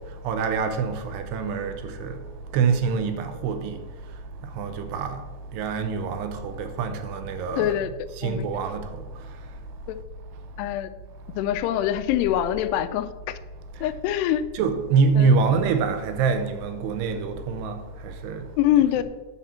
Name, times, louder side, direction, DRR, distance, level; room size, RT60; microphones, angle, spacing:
voice 1, 0.2-2.2 2.5-3.8 4.6-5.2 5.5-7.8 8.2-8.9 14.5-18.4 19.0-19.1, right 5 dB, 85° right, 2.9 m, -25 dB
voice 2, 7.6-7.9 8.2-8.5 9.9-10.0 10.6-10.9 11.4-13.4 13.8-14.4 15.2-15.4 18.6-19.0, left 12 dB, 90° left, 2.6 m, -24 dB
9.8 x 4.3 x 7.3 m
omnidirectional pair, 4.7 m